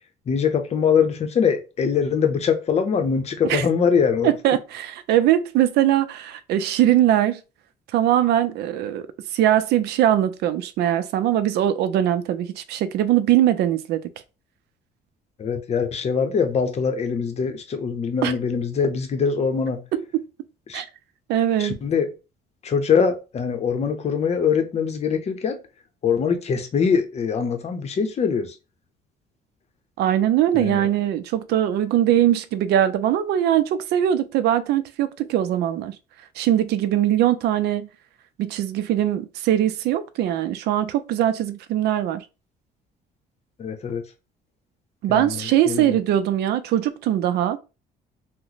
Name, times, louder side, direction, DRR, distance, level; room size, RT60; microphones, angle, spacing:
voice 1, 0.3-4.3 15.4-19.8 20.7-20.8 21.6-22.1 22.6-25.6 26.0-28.6 30.5-30.9 43.6-44.1 45.1-46.0, left 6 dB, 40° left, 0.7 m, -23 dB
voice 2, 4.2-7.4 7.9-9.1 9.3-14.1 18.2-18.3 19.9-20.2 20.7-20.9 21.3-21.8 30.0-36.0 36.4-37.9 38.4-42.2 45.0-47.6, right 11 dB, 75° right, 0.5 m, -21 dB
2.9 x 2.1 x 3.9 m
cardioid pair, 110°, 17 cm